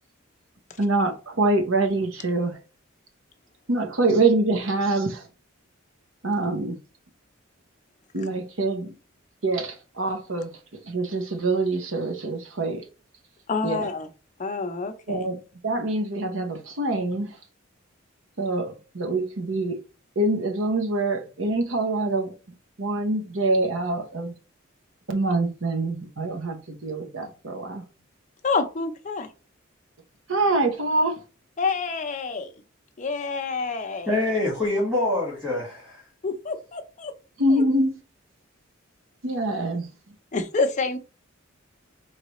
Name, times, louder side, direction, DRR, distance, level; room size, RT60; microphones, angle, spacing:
voice 1, 0.8-2.6 3.7-5.3 6.2-6.8 8.1-8.9 9.4-10.5 10.8-12.9 13.6-13.9 15.1-15.4 15.6-17.4 18.4-19.8 20.2-22.3 22.8-24.3 25.1-27.8 30.3-31.2 37.4-38.0 39.2-39.9, right 2 dB, 75° right, 0.9 m, -25 dB
voice 2, 13.5-14.1 14.4-15.2 28.4-29.3 31.6-32.5 33.0-34.1 36.2-37.1 40.3-41.0, left 4 dB, 35° left, 0.6 m, -27 dB
voice 3, 34.1-36.0, left 2 dB, 10° right, 1.8 m, -25 dB
4.0 x 3.3 x 3.0 m
head